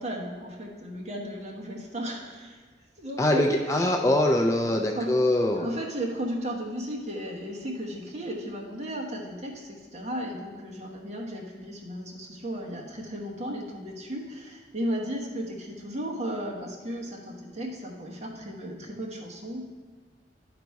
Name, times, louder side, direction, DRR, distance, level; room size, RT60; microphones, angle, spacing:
voice 1, 0.0-2.6 3.0-3.7 4.7-5.1 5.6-19.6, equal, 40° right, -2 dB, 1.1 m, -35 dB
voice 2, 3.2-5.7, left 1 dB, 15° left, 2 dB, 0.4 m, -23 dB
10.5 x 4.0 x 4.7 m, 1.5 s
head